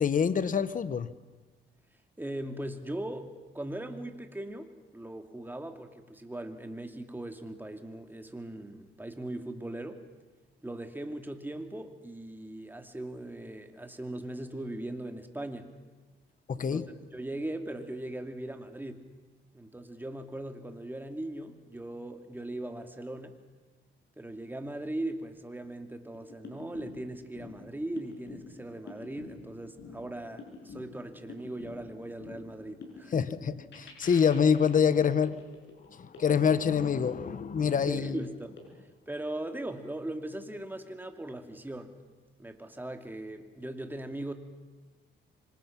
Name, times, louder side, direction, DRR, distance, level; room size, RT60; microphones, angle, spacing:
voice 1, 0.0-1.1 16.5-16.8 33.1-35.4 35.9-38.2, left 7 dB, 40° left, 14 dB, 1.2 m, -26 dB
voice 2, 2.2-10.0 10.6-15.7 16.6-16.8 17.1-19.0 19.5-23.4 24.2-33.3 37.9-38.6 39.1-41.9 42.4-44.3, right 1 dB, 10° right, 5 dB, 2.6 m, -39 dB
sound 1, 26.1-38.6, left 4 dB, 65° left, 7.5 m, -48 dB
26.0 x 25.5 x 6.1 m, 1.3 s
cardioid pair, 90°, 20 cm